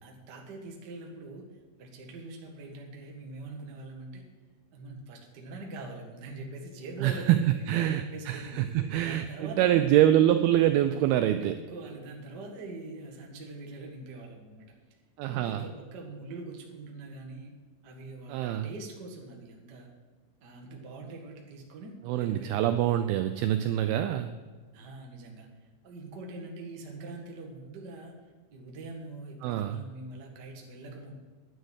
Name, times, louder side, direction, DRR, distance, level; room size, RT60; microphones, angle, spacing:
voice 1, 0.0-1.5 1.8-4.3 4.7-8.7 9.0-10.0 11.3-14.6 15.2-17.5 17.8-19.9 20.4-23.1 24.7-25.5 25.8-28.1 28.5-31.1, right 2 dB, 55° right, 1 dB, 1.1 m, -43 dB
voice 2, 7.0-7.4 7.7-11.6 15.2-15.6 18.3-18.7 22.1-24.3 29.4-29.8, right 12 dB, 85° right, 10 dB, 2.2 m, -25 dB
10.5 x 9.9 x 6.3 m, 1.4 s
omnidirectional pair, 4.9 m